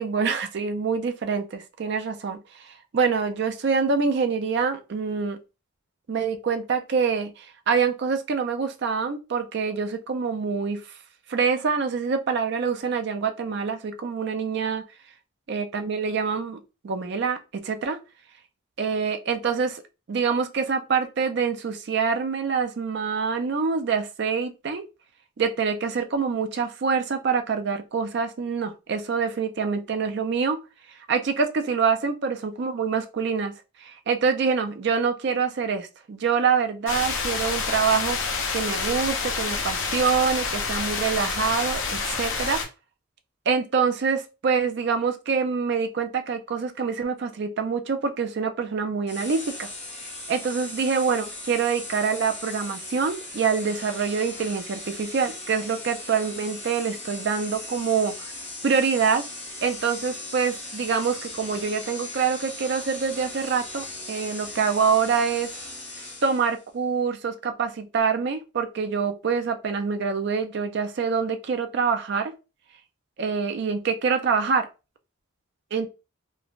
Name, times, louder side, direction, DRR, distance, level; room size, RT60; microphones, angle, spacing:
voice 1, 0.0-5.4 6.1-10.8 11.3-14.8 15.5-18.0 18.8-19.8 20.1-24.8 25.4-30.6 31.1-33.5 33.8-38.2 38.5-42.6 43.5-49.7 50.3-58.4 58.6-59.2 59.6-65.5 66.2-72.3 73.2-74.7 75.7-75.9, right 5 dB, 50° right, 0.4 m, -25 dB
sound 1, 36.9-42.7, left 4 dB, 65° left, 0.6 m, -28 dB
sound 2, 49.1-66.6, left 2 dB, 30° left, 0.7 m, -38 dB
3.2 x 2.0 x 2.3 m
head